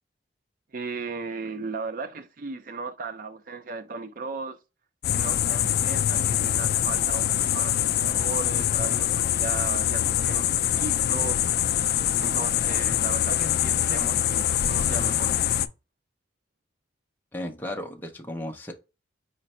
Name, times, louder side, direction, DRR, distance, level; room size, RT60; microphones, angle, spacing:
voice 1, 0.7-4.6 5.1-11.4 12.2-15.3, right 4 dB, 45° right, 0.5 m, -36 dB
sound 1, 5.0-15.7, left 11 dB, 55° left, 0.3 m, -24 dB
voice 2, 17.3-18.7, left 1 dB, 10° left, 0.6 m, -35 dB
5.1 x 2.2 x 4.1 m
head